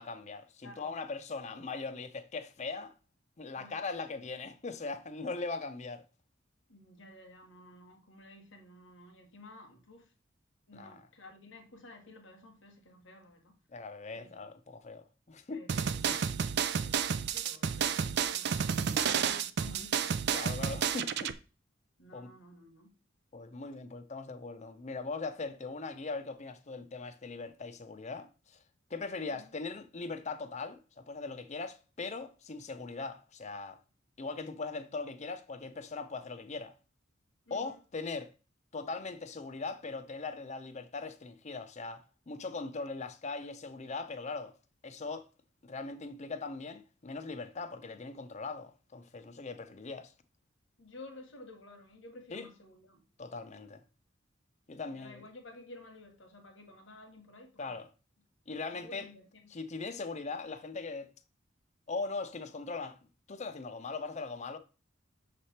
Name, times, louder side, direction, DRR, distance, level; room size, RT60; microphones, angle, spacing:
voice 1, 0.0-2.9 3.4-6.0 10.7-11.0 13.7-15.6 16.1-16.2 20.3-21.3 22.1-22.3 23.3-28.6 28.9-33.8 34.2-36.8 37.5-38.3 38.7-44.5 44.8-45.3 45.6-50.1 52.3-52.5 53.2-53.8 54.7-55.2 57.6-57.9 58.5-59.1 59.5-61.1 61.9-63.0 63.3-64.6, left 3 dB, 35° left, 0.6 m, -40 dB
voice 2, 6.7-10.1 10.7-13.6 14.1-14.5 15.5-16.0 16.8-20.5 22.0-22.9 29.3-29.5 37.5-37.8 50.8-53.0 54.9-57.8 58.7-59.5, left 1 dB, 75° left, 1.4 m, -53 dB
sound 1, 15.7-21.3, right 7 dB, 60° right, 0.4 m, -31 dB
6.7 x 3.3 x 4.3 m
head